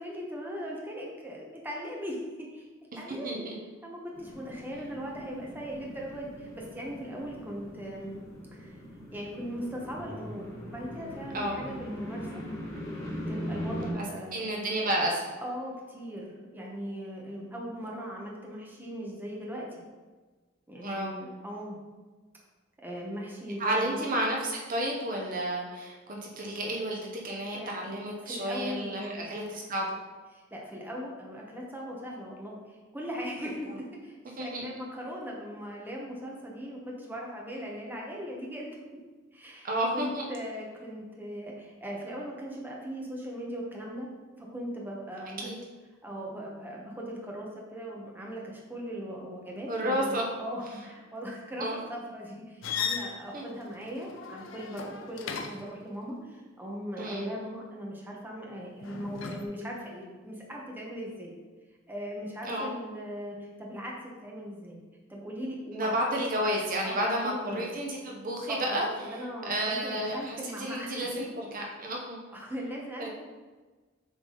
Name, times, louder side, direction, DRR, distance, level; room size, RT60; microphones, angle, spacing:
voice 1, 0.0-2.2 2.5-2.6 3.0-3.5 3.8-8.2 8.5-8.8 9.1-12.3 13.0-14.4 15.4-19.8 20.7-21.8 22.8-24.0 27.5-28.0 28.2-29.4 30.3-38.7 39.3-44.1 44.4-45.5 46.0-61.3 61.9-64.8 65.1-66.2 66.8-67.7 68.5-71.1 72.3-73.1, equal, 10° right, -2 dB, 1.0 m, -39 dB
voice 2, 3.2-3.5 11.3-11.6 14.3-15.2 20.8-21.1 23.6-29.9 34.4-34.7 39.6-40.2 45.4-45.5 49.7-50.2 51.6-51.8 53.3-53.4 57.0-57.3 62.4-62.7 65.7-68.9 69.4-72.2 73.0-73.1, right 1 dB, 45° right, -1 dB, 0.9 m, -31 dB
sound 1, 4.1-13.9, equal, 15° left, 1.7 m, -40 dB
sound 2, 52.6-55.8 58.8-59.4, left 6 dB, 75° left, 0.6 m, -37 dB
7.3 x 3.5 x 3.8 m, 1.3 s
head